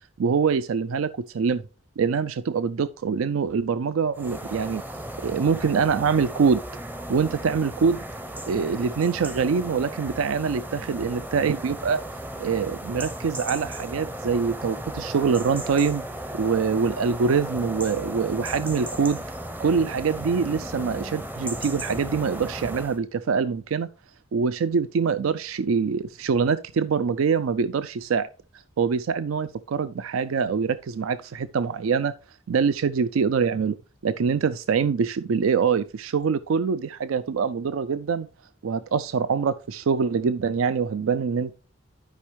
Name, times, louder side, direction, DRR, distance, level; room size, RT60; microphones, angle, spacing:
voice 1, 0.2-1.6 2.0-4.8 5.2-6.6 7.1-8.0 8.5-12.0 12.4-16.0 16.4-19.2 19.6-23.9 24.3-28.3 28.8-32.1 32.5-33.8 34.0-38.3 38.6-41.5, right 5 dB, 85° right, 0.4 m, -24 dB
sound 1, 4.1-23.0, right 1 dB, 10° right, 0.5 m, -35 dB
11.5 x 5.4 x 3.3 m
head